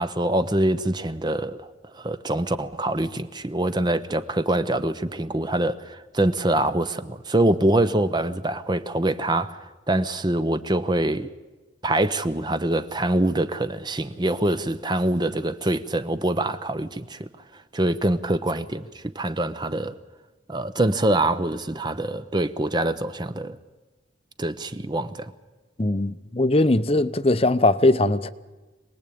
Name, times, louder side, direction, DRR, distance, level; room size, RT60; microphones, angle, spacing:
voice 1, 0.0-1.7 1.9-9.6 9.9-11.3 11.8-17.3 17.7-19.9 20.5-23.6 24.4-25.3, right 1 dB, 25° right, 0.8 m, -24 dB
voice 2, 25.8-28.3, left 2 dB, 30° left, 0.7 m, -20 dB
26.5 x 19.5 x 8.6 m
head